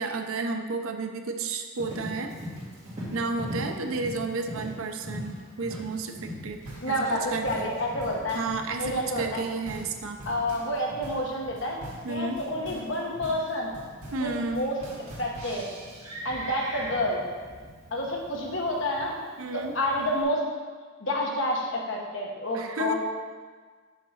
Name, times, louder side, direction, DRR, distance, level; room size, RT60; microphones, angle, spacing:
voice 1, 0.0-2.3 3.1-6.6 6.9-7.7 8.3-10.3 12.0-12.4 14.1-14.7 19.4-19.7 22.5-22.9, right 3 dB, 70° right, 6 dB, 0.5 m, -32 dB
Livestock farm animals working animals, 1.7-20.2, equal, 30° right, 1.8 m, -42 dB
sound 1, 6.7-16.1, right 1 dB, 85° right, 1.8 m, -44 dB
voice 2, 6.8-8.4 8.8-9.5 10.2-11.8 12.1-13.7 14.2-14.8 15.2-15.6 16.2-17.2 17.9-19.2 19.5-20.4 21.0-22.9, left 1 dB, 55° left, -1 dB, 1.1 m, -29 dB
6.4 x 3.9 x 5.6 m, 1.5 s
head